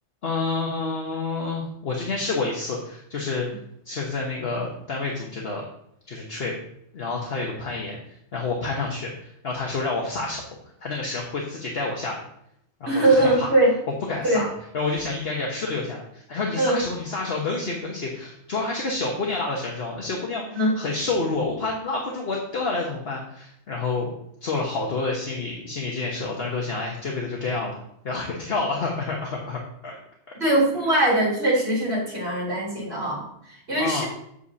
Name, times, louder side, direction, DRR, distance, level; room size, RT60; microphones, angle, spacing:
voice 1, 0.2-3.5 3.8-5.6 6.1-6.5 6.9-8.0 8.3-10.4 10.8-12.2 12.8-13.5 14.1-14.5 14.7-24.1 24.4-27.8 28.0-30.0 33.8-34.0, left 3 dB, 50° left, -1 dB, 1.3 m, -28 dB
voice 2, 12.9-13.7 14.2-14.4 16.6-16.8 20.5-20.7 30.4-34.0, right 1 dB, 55° right, -5 dB, 4.0 m, -21 dB
8.2 x 8.0 x 2.8 m, 0.73 s
omnidirectional pair, 1.3 m